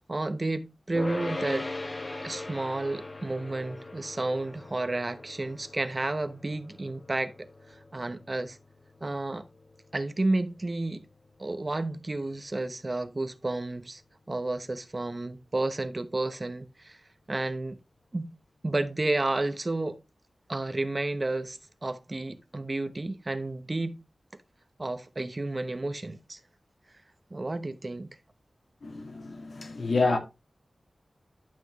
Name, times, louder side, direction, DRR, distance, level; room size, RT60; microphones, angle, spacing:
voice 1, 0.1-1.7 2.2-7.3 7.9-8.6 9.0-9.4 9.9-11.0 11.4-14.0 14.3-17.0 17.3-17.8 18.1-18.3 18.6-20.0 20.5-24.0 24.8-26.4 27.3-28.1, right 2 dB, 35° right, 0.9 m, -31 dB
sound 1, 0.9-12.3, left 2 dB, 35° left, 1.0 m, -41 dB
voice 2, 28.8-30.2, left 3 dB, 70° left, 2.2 m, -28 dB
11.5 x 5.7 x 3.1 m
wide cardioid pair, 85°, 0 cm